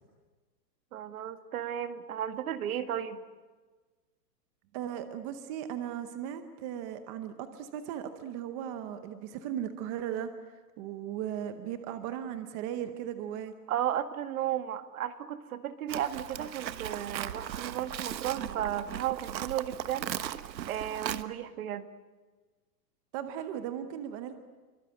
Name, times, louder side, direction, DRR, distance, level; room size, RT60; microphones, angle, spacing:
voice 1, 0.9-3.2 13.7-20.1 20.7-21.8, right 10 dB, 55° right, 10 dB, 2.0 m, -34 dB
voice 2, 4.7-10.3 10.8-13.5 23.1-24.4, right 10 dB, 20° right, 9 dB, 0.8 m, -37 dB
Livestock farm animals working animals, 15.9-21.2, right 11 dB, 90° right, 1.4 m, -37 dB
27.5 x 24.0 x 9.0 m, 1.3 s
hypercardioid pair, 165°, 50 cm